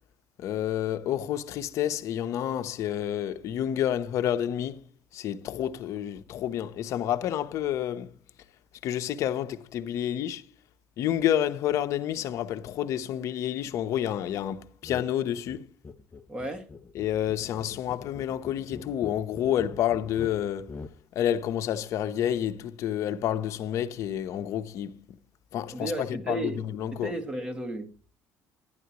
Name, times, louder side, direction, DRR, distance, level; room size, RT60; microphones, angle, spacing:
voice 1, 0.4-4.8 5.1-8.1 8.8-10.4 11.0-15.7 17.0-20.8 21.1-25.0 25.5-27.1, left 11 dB, 65° left, 0.9 m, -29 dB
sound 1, 14.8-15.1 15.4-21.0, left 4 dB, 25° left, 0.7 m, -44 dB
voice 2, 16.3-16.7 25.7-26.7 26.9-27.9, right 2 dB, 20° right, 1.8 m, -34 dB
11.0 x 10.5 x 3.0 m
cardioid pair, 120°, 6 cm